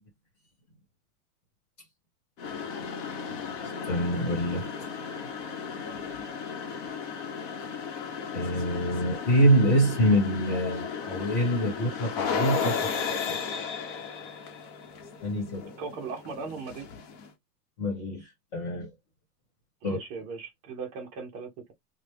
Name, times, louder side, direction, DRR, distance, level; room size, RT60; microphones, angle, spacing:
sound 1, 2.4-17.3, left 6 dB, 50° left, 1.0 m, -35 dB
voice 1, 3.8-4.9 8.3-13.2 15.2-15.7 17.8-18.9 19.8-20.0, equal, 35° left, 1.5 m, -26 dB
voice 2, 15.8-16.9 19.8-21.7, right 5 dB, 20° right, 0.5 m, -38 dB
3.1 x 2.2 x 3.2 m
supercardioid pair, 160°, 47 cm